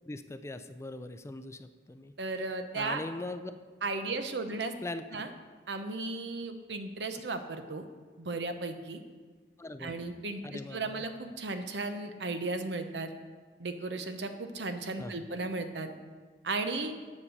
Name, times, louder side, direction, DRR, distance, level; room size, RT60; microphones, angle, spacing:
voice 1, 0.1-2.1 2.4-3.5 4.8-5.2 9.6-9.9 10.4-11.0 15.0-15.2, left 2 dB, 15° left, 10 dB, 0.4 m, -41 dB
voice 2, 2.2-3.0 3.8-4.7 5.1-5.3 5.7-7.9 8.2-9.0 9.8-13.1 13.6-15.9 16.4-16.9, right 3 dB, 80° right, 8 dB, 0.9 m, -35 dB
8.3 x 7.3 x 6.6 m, 1.5 s
head